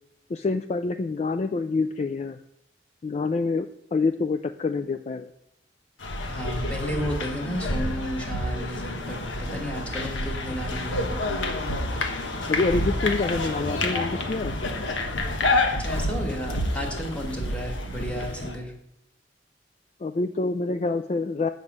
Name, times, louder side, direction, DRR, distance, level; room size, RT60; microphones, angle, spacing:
voice 1, 0.3-2.4 3.0-5.3 12.5-14.6 20.0-21.5, left 3 dB, 35° left, 8 dB, 0.3 m, -26 dB
sound 1, 6.0-18.5, left 2 dB, 85° left, 1.2 m, -28 dB
voice 2, 6.3-11.2 15.8-18.7, equal, 5° left, 1 dB, 1.6 m, -33 dB
8.0 x 5.4 x 7.3 m, 0.78 s
head